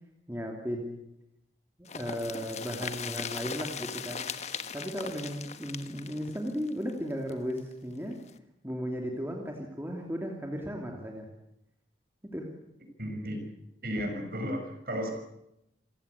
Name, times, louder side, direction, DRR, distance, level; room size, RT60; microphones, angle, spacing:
voice 1, 0.3-1.0 1.9-4.3 4.7-8.2 8.6-11.3 12.3-12.5, equal, 10° right, 1 dB, 2.7 m, -35 dB
sound 1, 1.9-7.6 7.9-8.0 8.3-8.4, left 6 dB, 35° left, 1.3 m, -39 dB
voice 2, 13.0-13.4 13.8-15.1, equal, 50° right, 4 dB, 6.1 m, -34 dB
27.0 x 16.5 x 8.4 m, 0.84 s
head